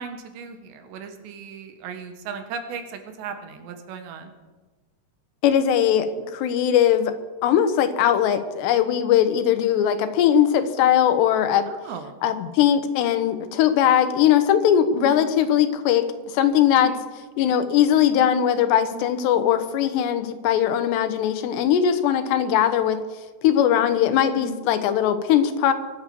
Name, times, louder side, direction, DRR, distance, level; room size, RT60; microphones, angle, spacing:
voice 1, 0.0-4.3 11.7-12.2 15.0-15.2 16.8-17.0 18.9-19.1 24.4-24.6, right 5 dB, 85° right, 7 dB, 3.7 m, -36 dB
voice 2, 5.4-7.1 7.4-11.7 12.2-16.9 17.4-23.0 23.4-25.7, left 9 dB, 80° left, 10 dB, 3.2 m, -20 dB
23.5 x 8.4 x 6.9 m, 1.3 s
omnidirectional pair, 4.9 m